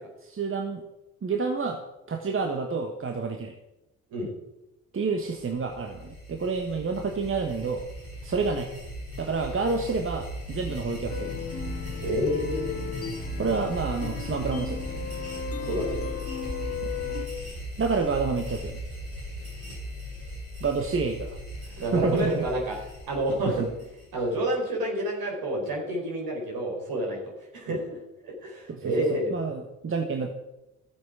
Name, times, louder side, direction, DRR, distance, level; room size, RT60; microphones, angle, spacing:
voice 1, 0.3-0.8 1.2-1.8 2.1-3.5 4.9-7.9 8.2-8.7 9.2-11.4 13.4-14.8 16.8-16.9 17.8-18.8 20.6-22.4 22.7-22.8 23.4-23.7 27.7-27.8 28.7-30.3, right 4 dB, 30° right, 3 dB, 1.5 m, -29 dB
sound 1, 5.3-24.4, equal, 85° right, 4.9 m, -38 dB
sound 2, 11.1-17.3, left 6 dB, 35° left, 2.2 m, -36 dB
voice 2, 12.0-12.8 15.6-16.0 21.8-22.7 23.1-23.6 24.1-27.2 27.5-28.0 28.2-29.3, right 1 dB, 55° right, -1 dB, 4.6 m, -28 dB
15.0 x 7.9 x 4.9 m, 0.95 s
figure-of-eight pair, 45°, 42 cm